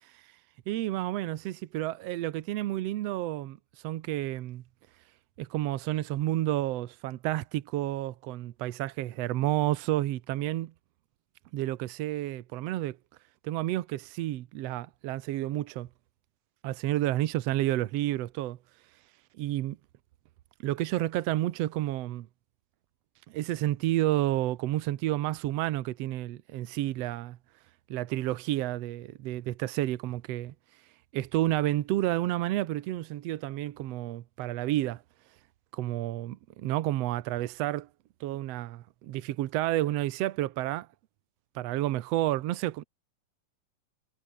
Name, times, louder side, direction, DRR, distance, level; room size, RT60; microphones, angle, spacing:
voice 1, 0.7-3.6 3.8-4.6 5.4-10.7 11.5-13.0 13.4-15.9 16.6-18.6 19.4-19.8 20.6-22.3 23.3-27.4 27.9-30.5 31.1-35.0 35.7-37.9 38.2-40.9 41.5-42.8, right 14 dB, 75° right, 1.5 m, -30 dB
omnidirectional pair, 3.9 m